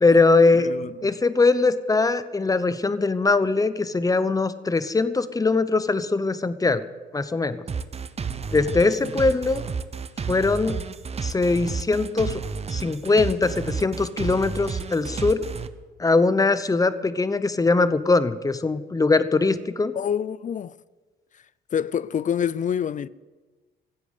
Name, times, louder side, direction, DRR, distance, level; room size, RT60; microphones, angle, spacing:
voice 1, 0.0-0.7 1.0-6.8 7.1-7.6 8.5-9.6 10.3-10.8 11.2-12.4 12.7-15.4 16.0-19.9, left 3 dB, 15° left, 0.8 m, -21 dB
voice 2, 0.6-1.2 9.0-9.1 19.9-20.7 21.7-23.1, left 8 dB, 40° left, 0.4 m, -27 dB
sound 1, 7.7-15.7, right 5 dB, 30° right, 0.8 m, -31 dB
15.0 x 8.3 x 8.2 m
cardioid pair, 90°, 20 cm